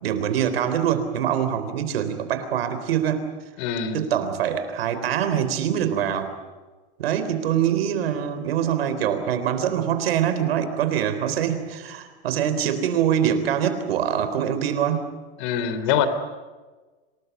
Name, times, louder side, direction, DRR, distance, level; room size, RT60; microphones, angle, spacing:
voice 1, 0.0-3.3 3.9-6.3 7.0-15.1, right 9 dB, 90° right, 10 dB, 3.7 m, -24 dB
voice 2, 3.6-4.0 15.4-16.1, left 8 dB, 55° left, 12 dB, 3.4 m, -24 dB
26.5 x 19.5 x 8.2 m, 1.3 s
supercardioid pair, 145°, 29 cm